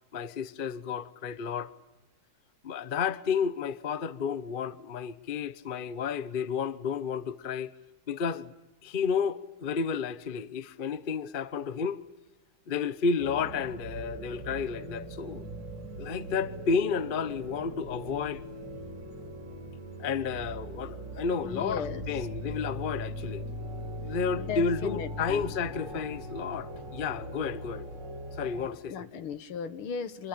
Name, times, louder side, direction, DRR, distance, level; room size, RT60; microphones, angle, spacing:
voice 1, 0.1-1.7 2.6-7.7 8.1-8.5 8.8-12.0 12.7-15.4 16.0-18.4 20.0-23.5 24.0-27.9 28.4-28.9, left 6 dB, 40° left, 0.8 m, -31 dB
sound 1, 13.2-28.6, equal, 55° right, 3.8 m, -40 dB
voice 2, 21.4-22.3 24.4-25.5 28.9-30.3, left 7 dB, 85° left, 2.2 m, -37 dB
26.0 x 22.5 x 8.6 m
omnidirectional pair, 2.3 m